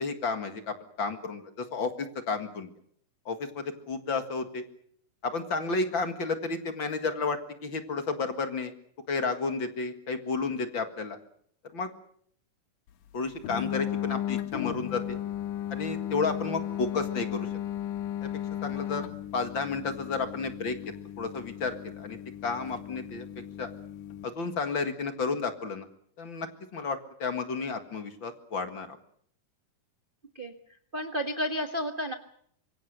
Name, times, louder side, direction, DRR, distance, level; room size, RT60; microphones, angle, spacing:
voice 1, 0.0-2.7 3.3-4.6 5.2-8.7 9.1-11.2 11.7-11.9 13.1-15.2 15.7-17.5 18.6-19.0 19.3-20.8 21.2-22.2 22.4-23.3 23.6-23.7 24.2-25.9 26.2-26.5 26.7-28.9, left 4 dB, 45° left, 8 dB, 2.3 m, -32 dB
sound 1, 13.4-24.3, left 11 dB, 85° left, 2.8 m, -35 dB
voice 2, 30.9-32.1, equal, 40° right, 5 dB, 0.7 m, -31 dB
26.0 x 23.0 x 6.6 m, 0.65 s
omnidirectional pair, 3.6 m